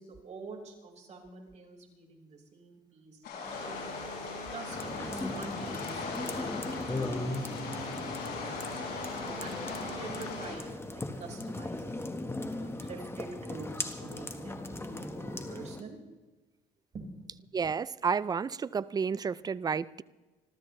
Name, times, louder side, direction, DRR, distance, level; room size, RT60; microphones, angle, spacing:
voice 1, 0.0-3.9 4.5-7.4 7.6-8.7 9.4-12.1 12.6-16.0 16.9-17.3, right 4 dB, 40° right, 5.1 m, -47 dB
sound 1, 3.2-10.6, left 4 dB, 75° left, 6.1 m, -40 dB
sound 2, 3.4-10.4, left 2 dB, 45° left, 7.0 m, -43 dB
sound 3, 4.7-15.8, left 2 dB, 15° left, 1.4 m, -38 dB
voice 2, 17.5-20.0, right 6 dB, 25° right, 0.4 m, -31 dB
28.0 x 13.0 x 3.3 m
cardioid pair, 110°, 17 cm